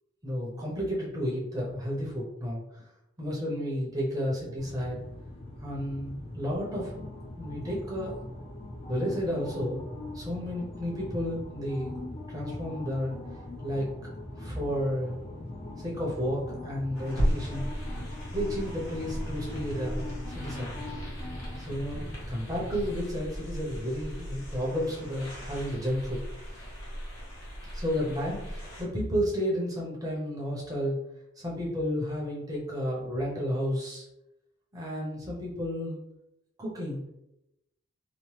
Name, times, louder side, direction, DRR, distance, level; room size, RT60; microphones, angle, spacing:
voice 1, 0.2-2.6 3.2-5.0 5.6-7.0 7.4-8.2 8.9-9.8 10.1-12.0 12.3-13.2 13.6-13.9 14.4-15.2 15.8-17.7 18.3-20.1 20.3-20.7 21.6-26.2 27.6-31.0 31.4-34.0 34.7-36.0 36.6-37.0, equal, 20° right, -4 dB, 0.7 m, -32 dB
sound 1, 4.6-22.9, left 1 dB, 30° left, 0.5 m, -41 dB
sound 2, 16.9-28.8, equal, 85° left, 1.2 m, -36 dB
2.9 x 2.0 x 3.1 m, 0.86 s
head